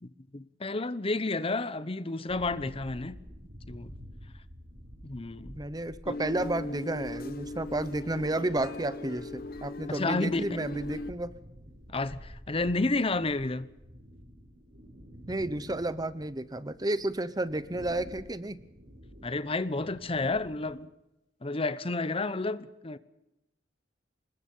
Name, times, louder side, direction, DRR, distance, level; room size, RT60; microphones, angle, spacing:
voice 1, 0.0-3.2 3.7-4.0 5.0-5.6 6.1-6.2 9.9-10.4 11.9-13.7 19.2-20.9 21.4-23.0, left 2 dB, 30° left, 0.9 m, -31 dB
sound 1, 2.3-20.7, equal, 60° right, 7.3 m, -50 dB
voice 2, 5.5-11.3 15.3-18.6, right 1 dB, 20° right, 0.9 m, -32 dB
sound 2, 6.1-11.1, left 2 dB, 55° left, 1.1 m, -39 dB
25.0 x 21.0 x 5.6 m
head